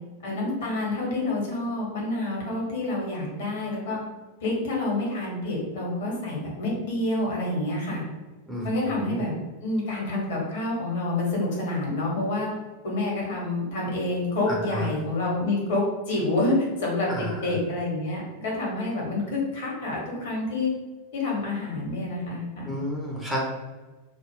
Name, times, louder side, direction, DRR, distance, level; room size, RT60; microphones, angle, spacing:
voice 1, 0.2-4.0 4.4-8.0 8.6-9.3 9.6-12.5 12.8-17.1 17.3-20.7 21.1-22.7, left 2 dB, 55° left, -3 dB, 1.0 m, -28 dB
voice 2, 8.5-9.2 14.5-14.9 17.1-17.5 22.6-23.4, equal, ahead, -4 dB, 0.6 m, -31 dB
2.4 x 2.0 x 3.4 m, 1.2 s
figure-of-eight pair, 90°, 0 cm